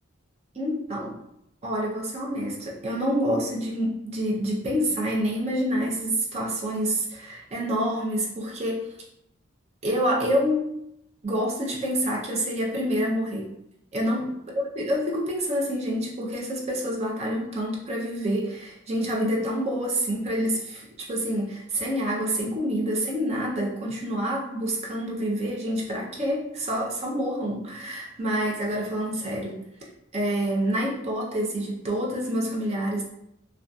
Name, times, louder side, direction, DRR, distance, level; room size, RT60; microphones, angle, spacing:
voice 1, 0.5-1.2 1.6-8.9 9.8-10.8 11.2-13.5 13.9-14.3 14.8-29.6 30.1-33.0, equal, 35° right, -2 dB, 0.5 m, -27 dB
2.6 x 2.3 x 2.3 m, 0.79 s
head